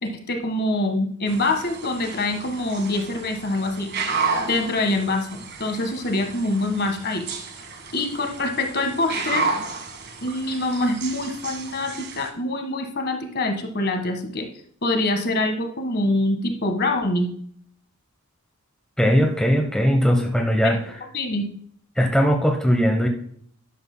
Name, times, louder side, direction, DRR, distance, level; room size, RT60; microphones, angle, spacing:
voice 1, 0.0-3.9 4.4-7.2 7.9-9.5 10.2-14.5 14.8-17.3 20.6-20.8 21.1-21.4, left 2 dB, 45° left, 4 dB, 1.6 m, -25 dB
sound 1, 1.3-12.3, right 4 dB, 50° right, 1.6 m, -32 dB
voice 2, 19.0-20.8 22.0-23.1, equal, 5° left, 3 dB, 0.9 m, -19 dB
11.0 x 11.0 x 2.2 m, 0.62 s
head